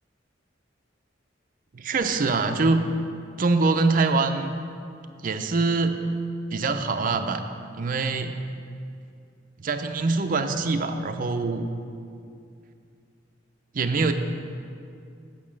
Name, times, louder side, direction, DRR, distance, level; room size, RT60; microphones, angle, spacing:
voice 1, 1.7-2.9 3.4-4.6 5.2-6.0 6.5-7.4 7.7-8.4 9.6-11.7 13.7-14.1, right 3 dB, 45° right, 7 dB, 0.5 m, -24 dB
8.5 x 5.8 x 7.4 m, 2.4 s
head